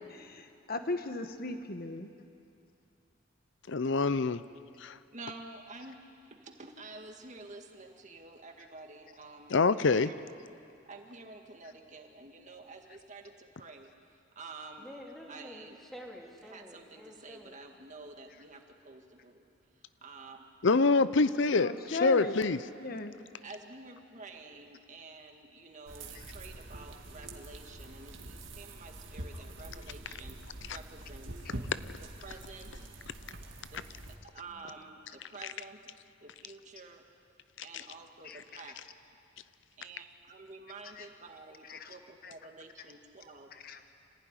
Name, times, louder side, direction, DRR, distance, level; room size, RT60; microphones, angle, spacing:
voice 1, 0.1-2.1 21.5-22.4 22.8-23.1 26.1-26.2 38.2-38.4 40.8-41.1 41.6-42.0 42.2-42.3 43.5-43.8, left 2 dB, 50° left, 7 dB, 1.3 m, -38 dB
voice 2, 3.7-4.4 4.8-5.0 9.5-10.1 20.6-22.6, left 4 dB, 65° left, 14 dB, 0.6 m, -25 dB
voice 3, 5.1-6.0 6.4-10.2 10.9-13.9 14.4-14.9 15.3-15.8 16.5-19.5 20.0-20.4 23.4-30.4 30.7-31.4 32.2-32.9 33.7-34.0 34.3-35.8 36.2-37.0 37.6-38.8 39.8-43.5, right 3 dB, 40° right, 3 dB, 2.0 m, -49 dB
voice 4, 14.8-17.6 34.5-34.8, equal, ahead, -1 dB, 2.9 m, -49 dB
sound 1, 25.9-34.2, right 1 dB, 70° right, 2.1 m, -45 dB
26.0 x 15.5 x 9.9 m, 2.6 s
head